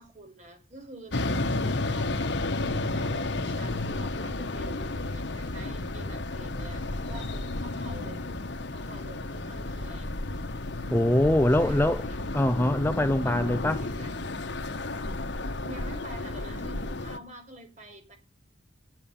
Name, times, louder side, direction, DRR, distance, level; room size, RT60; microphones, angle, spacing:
voice 1, 0.0-2.3 2.9-8.3 8.7-10.5 11.6-12.2 13.2-14.2 15.6-18.2, right 1 dB, 40° right, 4.6 m, -47 dB
sound 1, 1.1-17.2, left 2 dB, 65° left, 1.2 m, -32 dB
voice 2, 10.9-12.0 12.3-13.9, left 1 dB, 10° left, 0.5 m, -23 dB
9.8 x 7.7 x 8.4 m
head